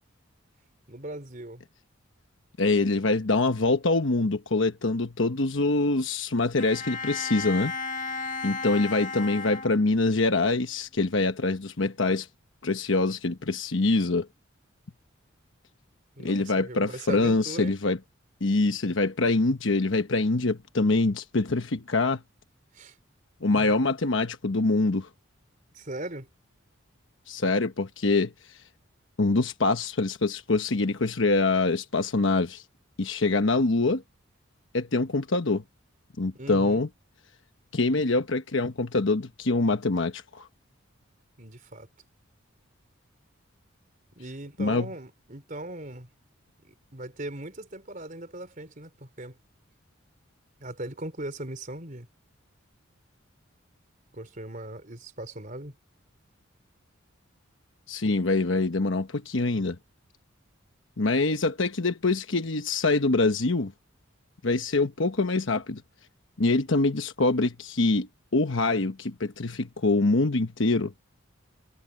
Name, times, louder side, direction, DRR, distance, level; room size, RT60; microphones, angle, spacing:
voice 1, 0.9-1.6 16.2-17.7 22.7-23.0 23.5-23.7 25.7-26.3 36.3-36.8 41.4-41.9 44.2-46.1 46.6-49.4 50.6-52.1 54.1-55.8, right 1 dB, 40° right, 3.7 m, -39 dB
voice 2, 2.6-7.7 8.4-12.3 12.6-14.3 16.2-18.0 18.4-22.2 23.4-25.1 27.3-28.6 29.2-32.6 33.0-34.0 34.7-35.6 36.2-36.9 37.7-40.5 44.6-44.9 57.9-59.8 61.0-63.7 64.4-65.8 66.4-70.9, left 3 dB, 65° left, 1.1 m, -25 dB
Bowed string instrument, 6.6-10.2, left 4 dB, 40° left, 1.6 m, -34 dB
head